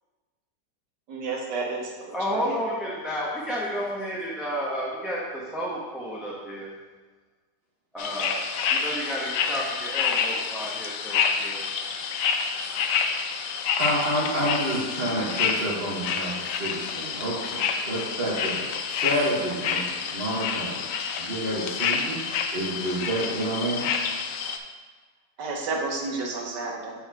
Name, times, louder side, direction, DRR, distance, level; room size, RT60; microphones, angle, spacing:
voice 1, 1.1-2.5 25.4-26.9, right 3 dB, 75° right, 0 dB, 1.7 m, -31 dB
voice 2, 2.1-6.7 7.9-8.4 8.7-11.6, equal, ahead, -6 dB, 0.7 m, -31 dB
sound 1, 8.0-24.6, left 6 dB, 80° left, 1.2 m, -28 dB
voice 3, 13.8-20.9 21.2-22.2 22.5-23.9, right 1 dB, 35° right, -8 dB, 1.5 m, -29 dB
7.0 x 4.2 x 4.7 m, 1.4 s
omnidirectional pair, 1.9 m